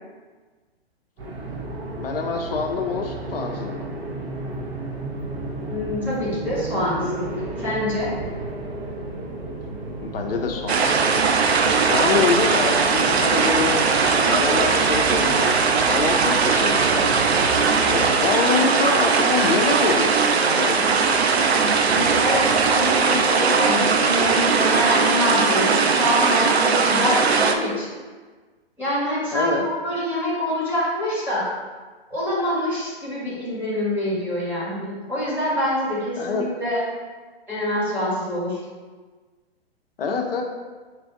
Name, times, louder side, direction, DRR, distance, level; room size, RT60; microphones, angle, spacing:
sound 1, 1.2-18.3, right 2 dB, 30° right, 0.7 m, -33 dB
voice 1, 2.0-3.9 10.0-11.3 11.9-13.8 14.2-17.4 17.8-20.2 20.6-21.0 29.3-29.6 36.2-36.5 40.0-40.4, left 4 dB, 65° left, 2 dB, 0.5 m, -25 dB
voice 2, 5.7-7.2 7.6-8.1 21.8-27.9 28.8-31.5 32.1-36.8 37.5-38.6, equal, 5° right, -9 dB, 1.3 m, -25 dB
sound 2, 10.7-27.6, right 5 dB, 85° right, 0.5 m, -19 dB
4.4 x 2.5 x 3.5 m, 1.4 s
figure-of-eight pair, 125°, 31 cm